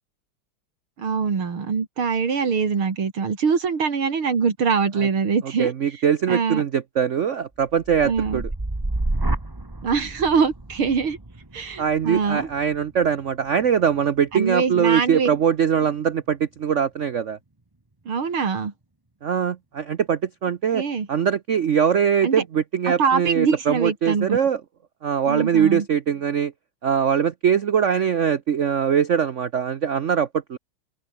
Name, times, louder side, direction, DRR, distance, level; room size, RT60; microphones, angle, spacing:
voice 1, 1.0-5.7 6.3-6.6 8.0-8.4 9.8-11.2 11.5-12.5 14.3-15.3 18.1-18.7 20.7-21.1 22.2-22.4 22.9-24.4 25.3-25.9, right 5 dB, 80° right, 3.7 m, -23 dB
voice 2, 5.6-8.5 11.8-17.4 19.2-20.8 21.1-24.6 25.0-26.5 26.8-30.6, right 8 dB, 60° right, 0.7 m, -22 dB
sound 1, 7.7-15.6 16.1-16.6, right 2 dB, 10° right, 1.5 m, -32 dB
omnidirectional pair, 2.3 m